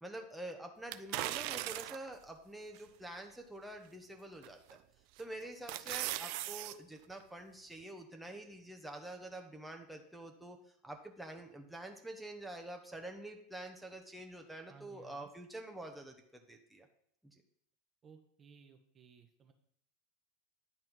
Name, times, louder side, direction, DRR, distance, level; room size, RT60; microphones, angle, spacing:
voice 1, 0.0-4.8 5.2-10.6 10.8-16.9, right 1 dB, 5° right, 3 dB, 0.9 m, -47 dB
sound 1, 0.9-2.1 2.7-2.8 4.4-4.8 5.2-6.7 7.1-7.2, right 16 dB, 55° right, 0.4 m, -39 dB
voice 2, 14.7-15.3 18.0-19.5, right 6 dB, 30° right, 7 dB, 1.0 m, -59 dB
9.8 x 4.4 x 5.6 m, 0.69 s
figure-of-eight pair, 80°, 0 cm